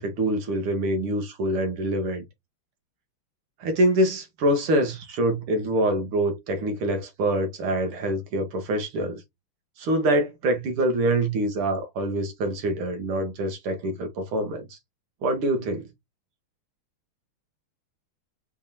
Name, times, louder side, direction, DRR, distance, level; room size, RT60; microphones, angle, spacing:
voice 1, 0.0-2.2 3.6-9.2 9.8-14.8 15.2-15.9, right 1 dB, 80° right, 2.3 m, -25 dB
5.4 x 3.6 x 2.7 m
omnidirectional pair, 2.3 m